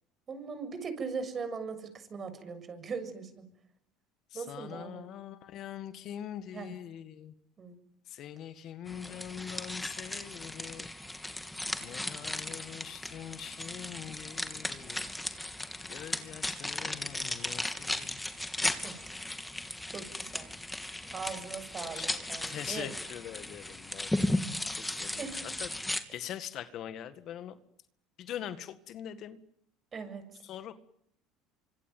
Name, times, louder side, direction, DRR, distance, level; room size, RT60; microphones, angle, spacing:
voice 1, 0.3-3.4 4.3-5.1 6.5-6.8 7.6-7.7 18.8-19.2 19.9-20.5 21.1-22.9 25.2-25.5 29.9-30.2, right 5 dB, 35° right, 9 dB, 7.1 m, -40 dB
voice 2, 4.3-7.3 8.1-10.9 11.8-15.1 15.9-18.2 21.0-21.1 21.8-22.2 22.5-24.4 24.7-25.2 25.6-25.7 26.1-27.6 28.2-29.4 30.4-30.7, left 10 dB, 55° left, 12 dB, 1.8 m, -43 dB
sound 1, 8.9-26.0, left 1 dB, 10° left, 2.8 m, -36 dB
25.5 x 25.0 x 9.3 m, 0.71 s
supercardioid pair, 95°, 0 cm